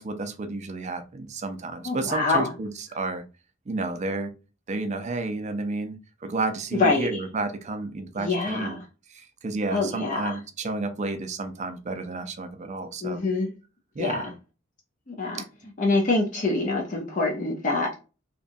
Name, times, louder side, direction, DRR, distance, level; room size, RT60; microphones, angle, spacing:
voice 1, 0.0-3.2 3.7-4.3 4.7-8.8 9.1-13.2 14.0-14.2, right 3 dB, 35° right, 7 dB, 0.4 m, -31 dB
voice 2, 1.8-2.5 6.7-7.2 8.2-8.8 9.7-10.4 13.0-13.5 14.0-14.3 15.1-15.4 15.8-18.0, left 3 dB, 40° left, 1 dB, 0.6 m, -25 dB
2.8 x 2.3 x 2.6 m, 0.31 s
head